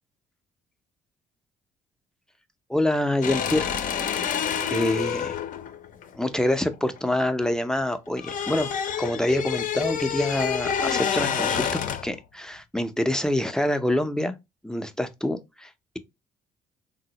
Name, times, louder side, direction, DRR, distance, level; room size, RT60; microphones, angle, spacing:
voice 1, 2.7-4.1 4.7-5.3 6.1-8.7 9.0-14.3 14.6-15.7, left 1 dB, 5° left, 0.5 m, -26 dB
sound 1, 3.2-7.5 7.8-12.2, left 8 dB, 55° left, 0.5 m, -28 dB
3.6 x 2.0 x 2.8 m
supercardioid pair, 65°, 16 cm